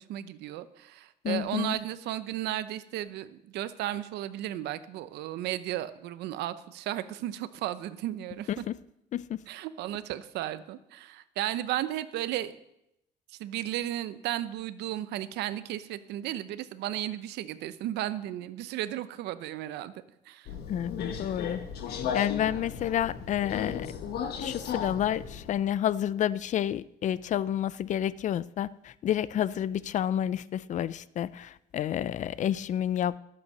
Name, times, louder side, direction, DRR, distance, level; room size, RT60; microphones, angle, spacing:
voice 1, 0.0-8.5 9.5-12.5 13.4-19.9 20.3-20.5, right 13 dB, 80° right, 0.8 m, -34 dB
voice 2, 1.2-1.8 8.7-8.8 9.1-9.4 20.7-21.6 21.9-23.9 24.4-33.2, left 10 dB, 45° left, 0.5 m, -30 dB
Subway metro underground, 20.5-25.6, left 7 dB, 70° left, 1.4 m, -35 dB
12.0 x 7.7 x 6.6 m
cardioid pair, 110°, 17 cm